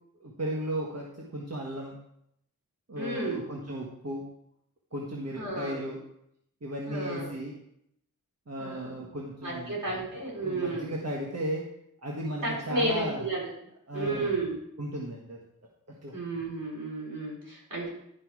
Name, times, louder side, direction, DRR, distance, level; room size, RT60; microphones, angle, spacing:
voice 1, 0.2-2.0 2.9-4.2 4.9-6.0 6.6-7.5 8.5-9.8 10.4-11.6 12.0-13.2 13.9-14.3 14.8-15.4 15.9-16.2, right 1 dB, 50° right, -2 dB, 1.5 m, -35 dB
voice 2, 3.0-3.4 5.4-5.8 6.9-7.3 8.6-9.0 9.4-10.9 12.4-13.5 13.9-14.6 16.1-17.9, right 2 dB, 75° right, -4 dB, 4.3 m, -32 dB
11.5 x 5.5 x 4.8 m, 0.76 s
wide cardioid pair, 50°, 33 cm